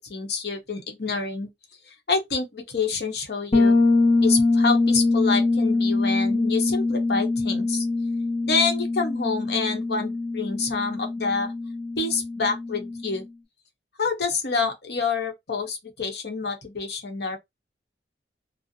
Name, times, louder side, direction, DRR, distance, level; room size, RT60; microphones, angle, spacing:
voice 1, 0.1-1.5 1.9-3.7 4.2-7.8 8.4-11.5 12.0-13.3 14.0-17.4, left 4 dB, 70° left, 0.8 m, -27 dB
Bass guitar, 3.5-13.2, left 3 dB, 35° left, 0.8 m, -23 dB
2.5 x 2.0 x 2.6 m
head